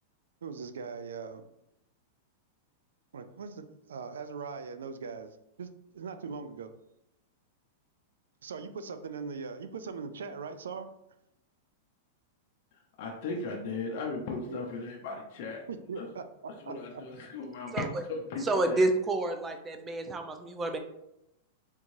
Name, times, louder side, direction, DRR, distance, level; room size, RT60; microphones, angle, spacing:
voice 1, 0.4-1.4 3.1-6.7 8.4-10.9 14.4-14.7 15.7-17.0, right 5 dB, 85° right, 9 dB, 0.3 m, -40 dB
voice 2, 13.0-15.6 16.0-16.1 16.6-18.8, left 3 dB, 60° left, 0 dB, 0.6 m, -37 dB
voice 3, 17.7-18.0 18.4-20.8, right 2 dB, 20° right, 6 dB, 0.5 m, -29 dB
3.6 x 3.0 x 2.6 m, 0.83 s
hypercardioid pair, 120°, 0 cm